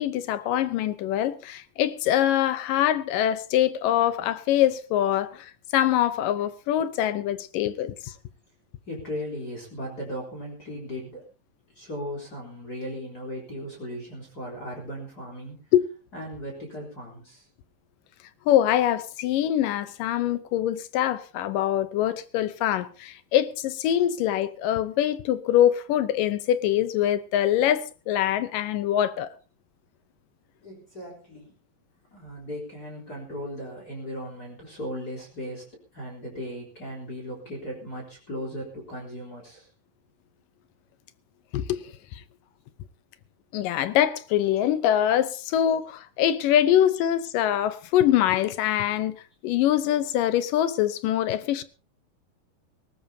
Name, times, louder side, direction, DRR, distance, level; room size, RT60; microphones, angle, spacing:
voice 1, 0.0-8.1 15.7-15.9 18.5-29.3 41.5-41.8 42.1-42.2 43.5-49.2 49.4-51.6, left 11 dB, 80° left, 2.5 m, -24 dB
voice 2, 8.9-11.2 11.7-15.6 16.1-17.4 30.6-31.6 32.1-35.6 35.9-39.7, equal, 25° left, 4.1 m, -37 dB
19.0 x 18.5 x 2.8 m
omnidirectional pair, 3.9 m